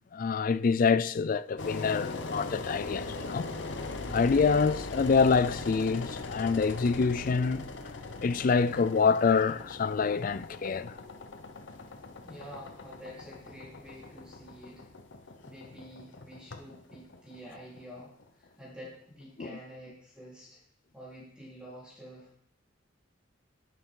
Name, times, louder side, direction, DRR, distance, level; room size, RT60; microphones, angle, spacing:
voice 1, 0.1-3.5 4.1-7.7 8.2-10.9 19.4-19.5, left 5 dB, 45° left, 0.4 m, -26 dB
Engine, 1.6-18.5, left 3 dB, 70° left, 0.9 m, -40 dB
voice 2, 12.2-14.8 15.4-20.6 20.9-22.3, equal, 5° right, 3.9 m, -48 dB
11.0 x 7.0 x 3.8 m
head